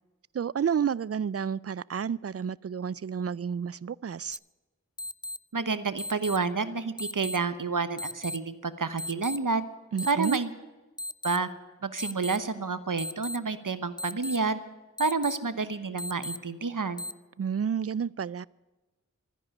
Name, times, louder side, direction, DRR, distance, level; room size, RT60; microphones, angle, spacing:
voice 1, 0.3-4.4 9.9-10.4 17.4-18.5, right 7 dB, 50° right, 0.4 m, -30 dB
sound 1, 4.3-4.4 5.0-5.4 6.0-6.4 7.0-7.4 8.0-8.4 9.0-9.4 10.0-10.4 11.0-11.4 12.0-12.4 13.0-13.4 14.0-14.4 15.0-15.4 16.0-16.4 17.0-17.1, left 1 dB, 15° left, 0.4 m, -35 dB
voice 2, 5.5-9.7 10.1-10.5 11.2-11.5 11.8-14.6 15.0-17.0, right 4 dB, 85° right, 1.0 m, -29 dB
13.5 x 10.5 x 9.5 m
wide cardioid pair, 45°, 31 cm